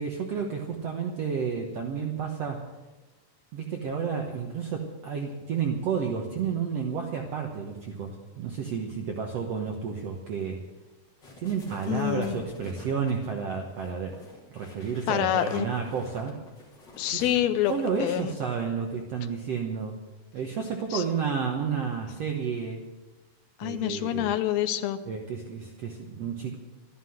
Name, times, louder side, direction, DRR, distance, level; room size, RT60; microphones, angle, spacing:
voice 1, 0.0-2.7 3.5-10.6 11.4-14.2 14.5-16.4 17.1-17.3 17.7-20.0 20.3-22.8 23.6-24.4 25.1-26.6, right 6 dB, 60° right, 2 dB, 1.9 m, -31 dB
sound 1, 11.2-18.1, left 2 dB, 30° left, 3.7 m, -48 dB
voice 2, 11.9-12.4 15.1-15.7 17.0-17.7 18.0-18.3 20.9-21.0 23.6-25.0, left 12 dB, 90° left, 9 dB, 1.5 m, -26 dB
13.5 x 11.5 x 7.8 m, 1.2 s
omnidirectional pair, 3.9 m